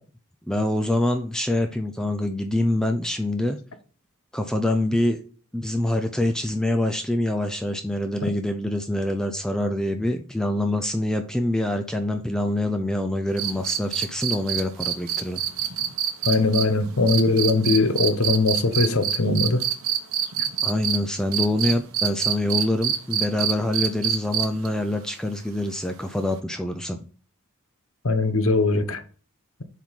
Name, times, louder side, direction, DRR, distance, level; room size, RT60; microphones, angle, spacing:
voice 1, 0.5-3.6 4.3-5.2 5.5-15.4 20.6-27.0, left 1 dB, 5° left, 0.4 m, -25 dB
sound 1, 13.4-21.0 21.3-24.7 26.3-26.4, right 10 dB, 70° right, 1.0 m, -25 dB
voice 2, 16.3-19.6 28.0-29.0, left 3 dB, 65° left, 0.9 m, -21 dB
7.3 x 3.7 x 4.0 m
head